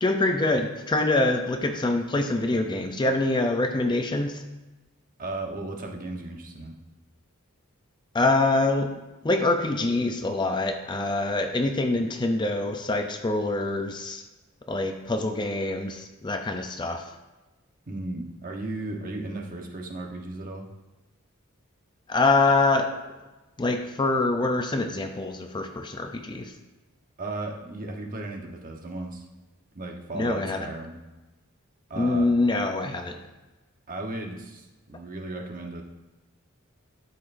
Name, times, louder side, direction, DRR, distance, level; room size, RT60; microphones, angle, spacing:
voice 1, 0.0-4.4 8.1-8.9 9.2-14.2 14.7-17.0 22.1-23.0 23.6-26.5 30.1-30.7 32.0-33.2, left 2 dB, 20° left, 5 dB, 0.5 m, -25 dB
voice 2, 5.2-6.8 17.9-20.7 27.2-29.2 29.7-31.0 31.9-32.3 33.9-35.8, right 2 dB, 40° right, 1 dB, 1.1 m, -35 dB
12.0 x 6.8 x 2.6 m, 1.1 s
head